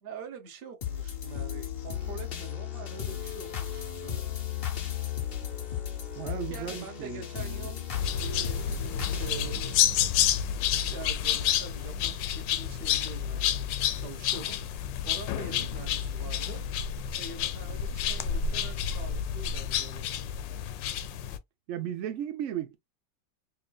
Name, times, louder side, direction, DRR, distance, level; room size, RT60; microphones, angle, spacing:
voice 1, 0.0-4.3 6.4-7.8 8.2-9.6 10.8-14.6 15.1-16.6 17.2-20.1, right 4 dB, 45° right, 0.8 m, -44 dB
sound 1, 0.8-10.9 11.3-11.4, left 10 dB, 65° left, 0.6 m, -35 dB
voice 2, 6.2-7.7 15.3-15.7 21.7-22.8, right 10 dB, 80° right, 0.6 m, -36 dB
sound 2, 7.9-21.4, left 9 dB, 80° left, 1.2 m, -29 dB
4.6 x 2.5 x 2.2 m
omnidirectional pair, 2.0 m